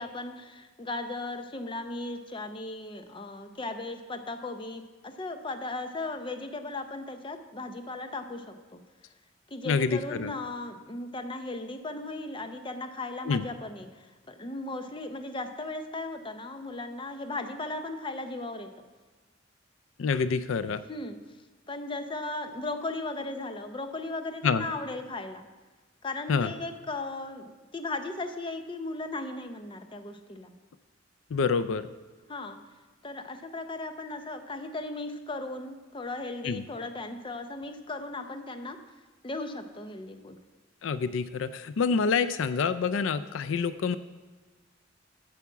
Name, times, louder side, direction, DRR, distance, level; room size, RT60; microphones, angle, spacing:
voice 1, 0.0-8.8 9.5-18.7 20.9-21.2 21.7-25.5 26.0-30.5 32.3-32.6 33.0-38.8 39.2-40.4, left 2 dB, 25° left, 7 dB, 0.7 m, -37 dB
voice 2, 9.6-10.3 13.3-13.4 20.0-20.8 24.4-24.6 26.3-26.5 31.3-31.9 36.4-36.6 40.8-44.0, left 5 dB, 85° left, 13 dB, 0.4 m, -27 dB
8.3 x 5.8 x 7.2 m, 1.3 s
head